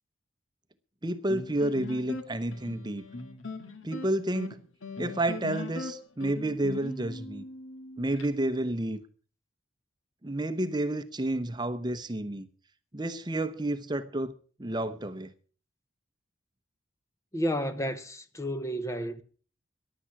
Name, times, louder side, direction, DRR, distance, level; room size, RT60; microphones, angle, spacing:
voice 1, 1.0-3.0 3.8-4.6 5.0-7.5 8.0-9.0 10.2-12.5 12.9-15.3, right 1 dB, 20° right, 0.8 m, -30 dB
sound 1, 1.3-8.3, left 3 dB, 80° left, 1.9 m, -40 dB
voice 2, 17.3-19.2, equal, 15° left, 0.8 m, -31 dB
15.0 x 11.5 x 5.9 m
head